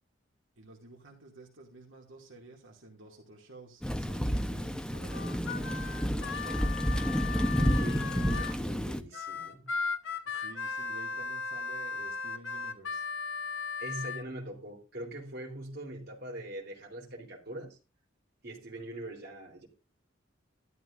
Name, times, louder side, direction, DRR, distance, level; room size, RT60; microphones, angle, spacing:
voice 1, 0.6-6.7 10.3-13.0, right 2 dB, 75° right, 2.5 m, -51 dB
Thunder / Rain, 3.8-9.0, equal, 5° left, 0.8 m, -30 dB
Harmonica, 5.1-8.6 9.1-14.2, left 5 dB, 70° left, 1.1 m, -37 dB
voice 2, 7.6-9.7 13.8-17.8 18.4-19.7, right 1 dB, 50° right, 3.7 m, -42 dB
12.5 x 12.0 x 2.6 m
head